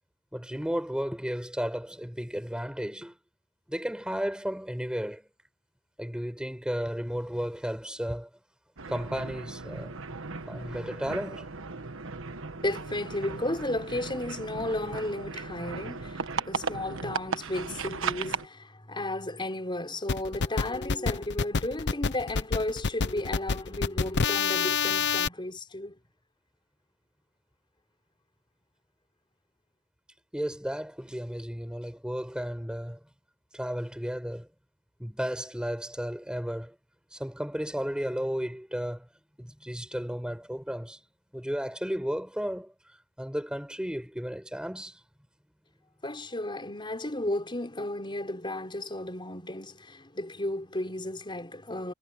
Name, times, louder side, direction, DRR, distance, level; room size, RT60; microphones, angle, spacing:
voice 1, 0.3-3.1 3.7-5.2 6.0-8.3 8.9-10.0 10.5-11.5 30.3-33.0 33.5-34.5 35.0-36.7 37.1-39.1 39.4-41.0 41.3-42.7 43.2-45.0, equal, 5° right, 5.5 m, -33 dB
sound 1, 8.8-18.5, right 4 dB, 65° right, 1.4 m, -36 dB
voice 2, 12.6-26.0 46.0-51.9, left 1 dB, 25° left, 4.8 m, -34 dB
sound 2, 20.1-25.3, left 5 dB, 55° left, 0.7 m, -27 dB
head